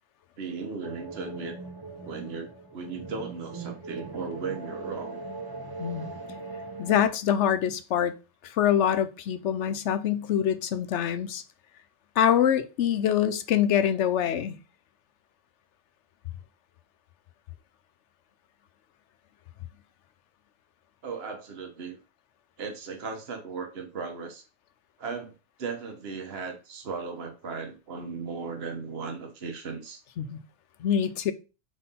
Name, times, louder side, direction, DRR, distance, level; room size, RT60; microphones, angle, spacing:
voice 1, 0.4-1.5 2.0-5.2 21.0-22.0 22.6-24.4 25.0-25.3 25.6-30.0, right 4 dB, 55° right, 1.4 m, -36 dB
sound 1, 0.8-7.0, right 3 dB, 25° right, 0.7 m, -40 dB
voice 2, 5.8-6.1 6.8-8.1 8.4-11.4 12.2-14.6 30.2-30.4 30.8-31.3, left 9 dB, 70° left, 0.9 m, -25 dB
4.5 x 4.2 x 5.5 m
omnidirectional pair, 1.3 m